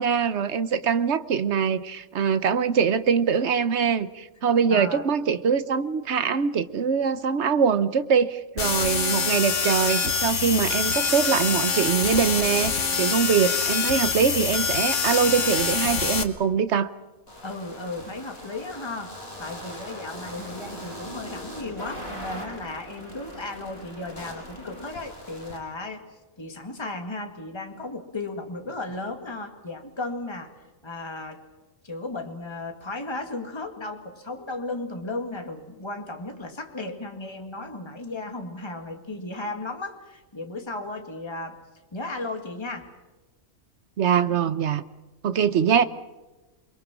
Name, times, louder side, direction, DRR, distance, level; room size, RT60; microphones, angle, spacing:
voice 1, 0.0-16.9 44.0-44.8 45.2-45.8, right 7 dB, 55° right, 13 dB, 1.2 m, -23 dB
voice 2, 4.7-5.1 17.4-26.0 26.4-30.5 30.8-31.4 31.8-41.6 41.9-42.9, left 2 dB, 20° left, 4 dB, 2.1 m, -35 dB
sound 1, 8.6-16.2, left 5 dB, 60° left, 1.7 m, -25 dB
sound 2, 17.3-25.6, equal, 45° left, 6.3 m, -40 dB
28.0 x 22.5 x 6.2 m, 1.1 s
omnidirectional pair, 1.5 m